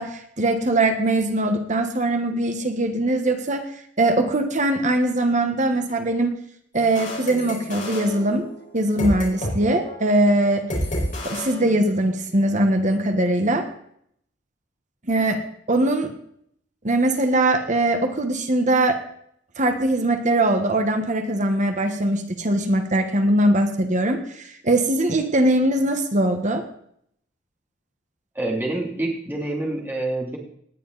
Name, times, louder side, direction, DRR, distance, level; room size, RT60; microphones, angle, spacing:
voice 1, 0.0-3.6 4.0-6.3 6.7-8.4 8.7-10.6 11.2-13.6 15.1-15.4 15.7-16.1 16.8-19.0 19.6-26.6, right 1 dB, 40° right, 6 dB, 1.4 m, -21 dB
sound 1, 6.7-9.6 9.8-10.1 10.7-12.2, left 1 dB, 45° left, 5.0 m, -30 dB
voice 2, 28.3-30.4, right 2 dB, 10° right, -2 dB, 2.9 m, -27 dB
18.5 x 10.5 x 4.1 m, 0.68 s
head